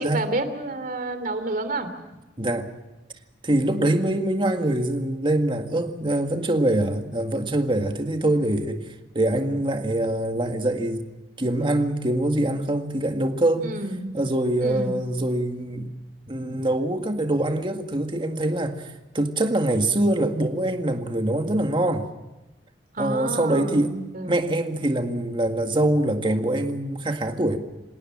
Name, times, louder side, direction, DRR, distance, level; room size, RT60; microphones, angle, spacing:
voice 1, 0.0-1.9 13.6-14.2 14.6-15.0 22.9-24.5, right 2 dB, 50° right, 10 dB, 3.0 m, -30 dB
voice 2, 2.4-2.7 3.4-11.1 11.4-13.8 14.1-15.9 16.3-22.1 23.0-23.9 24.3-27.6, right 1 dB, 30° right, 5 dB, 1.9 m, -24 dB
26.5 x 18.5 x 7.4 m, 1.1 s
head